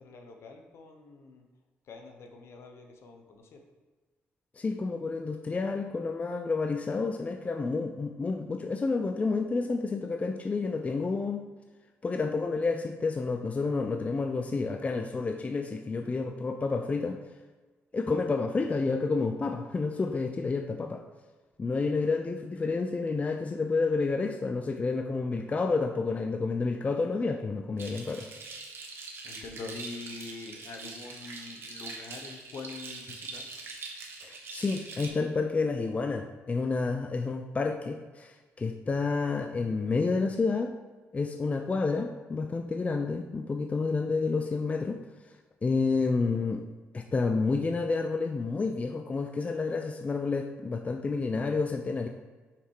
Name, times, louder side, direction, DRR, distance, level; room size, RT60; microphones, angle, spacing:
voice 1, 0.0-1.4 1.8-3.6 29.2-33.6, left 3 dB, 65° left, 4 dB, 1.0 m, -44 dB
voice 2, 4.6-11.4 12.0-17.2 17.9-21.0 21.6-28.3 34.2-40.7 41.1-45.0 45.6-46.6 46.9-52.1, left 4 dB, 30° left, 5 dB, 0.5 m, -29 dB
sound 1, 27.8-35.1, right 3 dB, 55° right, 1.2 m, -43 dB
5.8 x 4.1 x 4.7 m, 1.3 s
cardioid pair, 75°, 5 cm